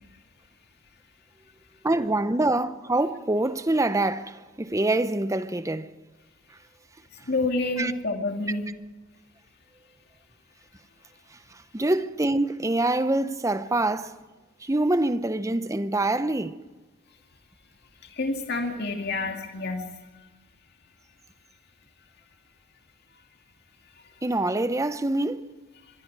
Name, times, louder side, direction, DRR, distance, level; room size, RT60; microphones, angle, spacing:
voice 1, 1.8-5.9 7.8-7.9 11.7-14.1 14.6-16.6 24.2-25.4, right 2 dB, 15° right, 0.7 m, -25 dB
voice 2, 7.3-8.6 18.0-20.0, left 2 dB, 50° left, 2.2 m, -28 dB
25.0 x 22.0 x 4.8 m
head